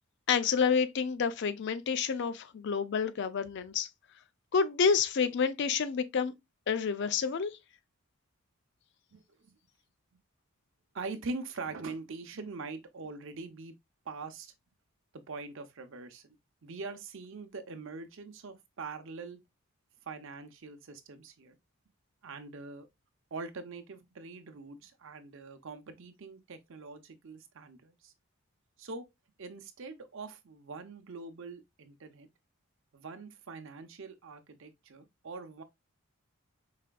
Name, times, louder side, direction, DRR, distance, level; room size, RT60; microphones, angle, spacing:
voice 1, 0.3-3.9 4.5-6.3 6.7-7.5, left 6 dB, 55° left, 0.4 m, -29 dB
voice 2, 9.1-9.5 10.9-13.7 14.1-14.5 15.1-16.4 16.6-19.4 20.1-21.6 22.2-22.9 23.3-28.1 28.8-29.1 29.4-32.3 32.9-35.6, right 3 dB, 60° right, 0.6 m, -43 dB
4.9 x 3.3 x 2.2 m
head